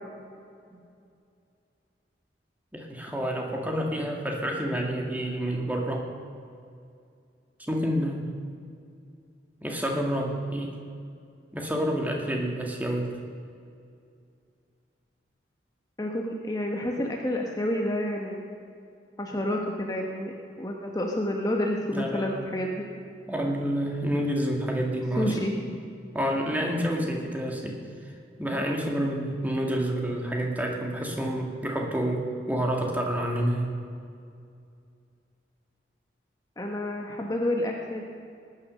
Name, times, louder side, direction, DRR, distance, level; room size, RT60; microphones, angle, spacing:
voice 1, 2.7-6.0 7.7-8.3 9.6-10.8 11.5-13.1 21.9-22.4 23.3-25.4 26.1-27.8 28.1-28.2 28.4-33.7, equal, 10° right, 0 dB, 1.9 m, -28 dB
voice 2, 16.0-18.4 19.2-22.9 25.2-26.0 28.5-28.6 36.6-38.0, left 1 dB, 20° left, 1 dB, 1.2 m, -29 dB
18.5 x 9.7 x 6.4 m, 2.4 s
head